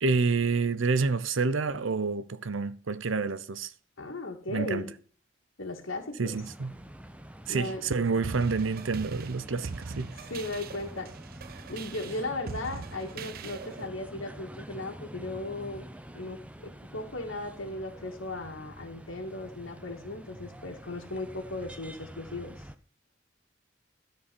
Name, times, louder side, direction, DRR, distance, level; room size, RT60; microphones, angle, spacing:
voice 1, 0.0-3.7 4.5-4.9 6.2-6.7 7.5-10.1, right 4 dB, 80° right, 0.7 m, -28 dB
voice 2, 4.0-4.9 5.6-6.4 7.5-7.8 10.3-11.1 11.7-15.8 16.1-22.6, left 2 dB, 90° left, 1.9 m, -37 dB
sound 1, 6.3-22.8, right 1 dB, 5° right, 0.6 m, -47 dB
sound 2, 8.2-13.9, right 4 dB, 50° right, 0.5 m, -41 dB
13.0 x 4.7 x 6.9 m
head